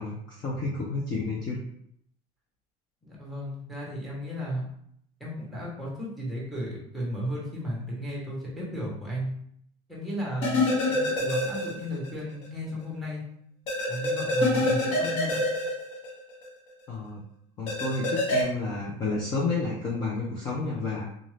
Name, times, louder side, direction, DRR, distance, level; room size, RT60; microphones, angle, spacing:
voice 1, 0.0-1.6 16.9-17.2 17.6-21.1, left 3 dB, 25° left, -4 dB, 0.5 m, -30 dB
voice 2, 3.0-4.7 5.2-9.3 9.9-13.2 13.9-15.4, equal, ahead, -4 dB, 1.0 m, -34 dB
sound 1, 10.4-12.1 12.4-12.5 13.7-16.5 17.7-18.4, left 2 dB, 40° left, 0.9 m, -26 dB
3.7 x 2.6 x 3.2 m, 0.69 s
cardioid pair, 175°, 16 cm